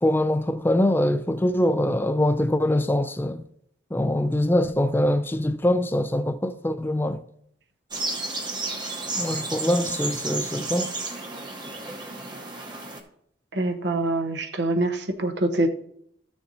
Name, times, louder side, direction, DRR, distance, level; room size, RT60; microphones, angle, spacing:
voice 1, 0.0-3.5 3.9-7.2 9.2-10.9, left 1 dB, 10° left, 0.4 m, -23 dB
sound 1, 7.9-13.0, right 3 dB, 25° right, 0.9 m, -32 dB
voice 2, 13.5-15.7, right 2 dB, 70° right, 0.9 m, -25 dB
14.0 x 6.6 x 2.7 m
head